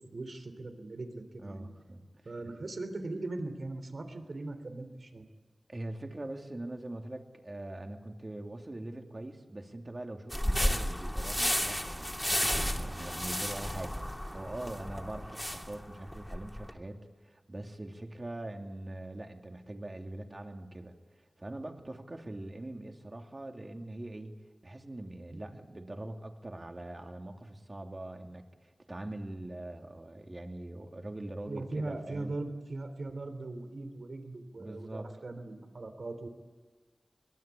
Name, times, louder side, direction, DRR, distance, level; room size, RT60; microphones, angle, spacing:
voice 1, 0.0-1.7 2.3-5.3 25.3-25.6 31.5-36.3, right 2 dB, 75° right, 8 dB, 3.5 m, -40 dB
voice 2, 1.4-2.3 5.7-21.0 21.4-32.3 34.6-35.1, right 1 dB, 35° right, 3 dB, 2.9 m, -43 dB
sound 1, 10.3-16.7, equal, 10° left, 2.9 m, -33 dB
24.0 x 22.0 x 8.6 m, 1.4 s
wide cardioid pair, 70°, 0 cm